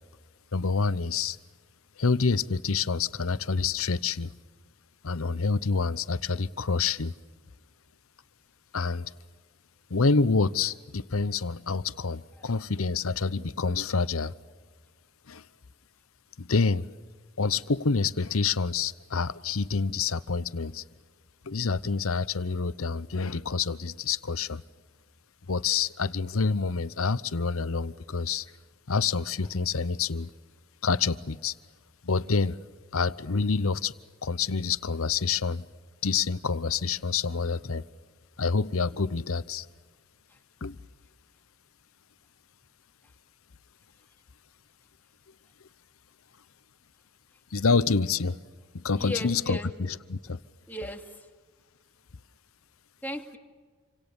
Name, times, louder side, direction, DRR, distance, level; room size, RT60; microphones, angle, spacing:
voice 1, 0.5-1.4 2.0-4.3 5.0-7.1 8.7-9.1 9.9-14.3 15.3-15.4 16.4-16.9 17.4-20.8 21.4-24.6 25.5-28.5 28.9-30.3 30.8-31.5 32.0-32.6 32.9-33.9 34.2-35.6 36.0-37.8 38.4-39.7 40.6-40.8 47.5-48.4 48.8-50.4, left 4 dB, 75° left, 0.9 m, -27 dB
voice 2, 49.0-49.7 50.7-51.3 53.0-53.4, left 1 dB, 10° left, 2.4 m, -36 dB
28.5 x 25.5 x 7.1 m
head